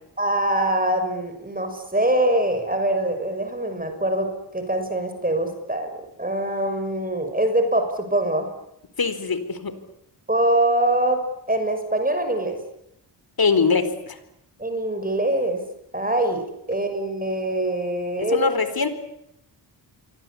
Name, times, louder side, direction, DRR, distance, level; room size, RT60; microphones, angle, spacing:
voice 1, 0.2-5.9 6.2-8.5 10.3-11.2 11.5-12.6 14.6-15.6 15.9-18.5, right 1 dB, 20° right, 6 dB, 6.2 m, -23 dB
voice 2, 9.0-9.8 13.4-14.2 18.3-18.9, left 5 dB, 55° left, 12 dB, 4.2 m, -22 dB
28.5 x 24.5 x 8.6 m, 0.80 s
wide cardioid pair, 90°, 44 cm